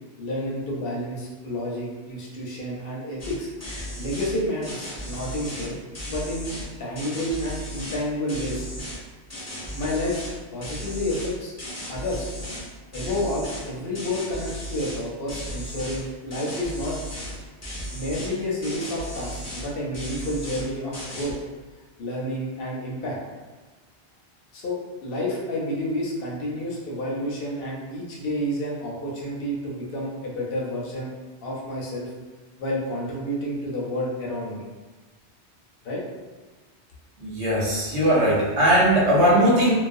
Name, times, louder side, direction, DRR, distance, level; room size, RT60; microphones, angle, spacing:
voice 1, 0.2-3.5 4.0-5.8 6.1-6.5 6.8-8.7 9.7-10.2 10.5-11.5 11.9-12.3 12.9-17.0 17.9-21.3 22.0-23.2 24.5-31.1 31.4-32.1 32.6-34.7 35.8-36.0, left 1 dB, 65° left, -3 dB, 0.7 m, -30 dB
sound 1, 3.2-3.3 3.6-4.3 4.6-6.7 7.0-8.0 8.3-9.0 9.3-10.3 10.6-12.7 12.9-13.7 13.9-15.0 15.3-16.0 16.3-17.4 17.6-18.3 18.6-19.7 19.9-20.7 20.9-21.3, equal, 20° left, 0.5 m, -35 dB
voice 2, 37.2-39.7, right 1 dB, 85° right, -6 dB, 1.1 m, -19 dB
2.4 x 2.1 x 2.5 m, 1.3 s
omnidirectional pair, 1.1 m